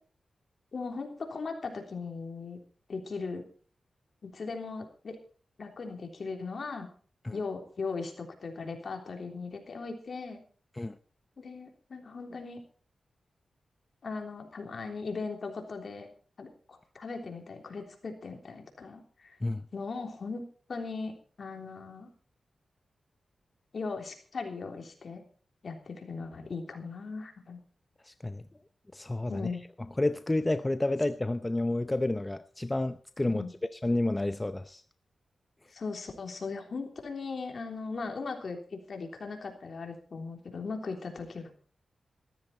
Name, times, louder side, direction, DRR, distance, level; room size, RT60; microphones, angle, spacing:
voice 1, 0.7-2.6 2.9-3.4 4.3-5.2 5.6-6.9 7.3-10.4 11.4-12.6 14.0-16.1 16.4-19.4 19.7-22.1 23.7-25.2 25.6-27.6 29.3-29.6 33.3-33.5 35.7-41.5, left 4 dB, 60° left, 3.4 m, -38 dB
voice 2, 28.0-28.4 28.9-29.5 30.0-33.4 33.8-34.8, left 2 dB, 20° left, 0.6 m, -30 dB
14.0 x 13.5 x 4.3 m
cardioid pair, 65°, 0 cm